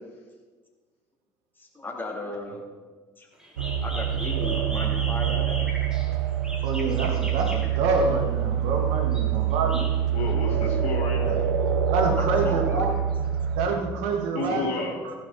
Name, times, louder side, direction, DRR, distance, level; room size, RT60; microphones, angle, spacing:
voice 1, 1.6-2.6 3.2-3.3 3.8-5.7 12.2-13.0, left 2 dB, 15° left, -1 dB, 2.9 m, -36 dB
sound 1, 3.4-8.2 8.9-10.3, equal, 5° right, 3.2 m, -39 dB
sound 2, 3.6-13.7, right 9 dB, 85° right, 0.7 m, -26 dB
voice 2, 6.6-9.9 11.9-12.9 13.5-14.7 15.0-15.1, right 3 dB, 70° right, 3 dB, 1.8 m, -26 dB
voice 3, 10.1-11.5 14.3-15.1, left 2 dB, 60° left, -2 dB, 2.2 m, -31 dB
15.5 x 6.7 x 4.2 m, 1.4 s
hypercardioid pair, 60°, 11 cm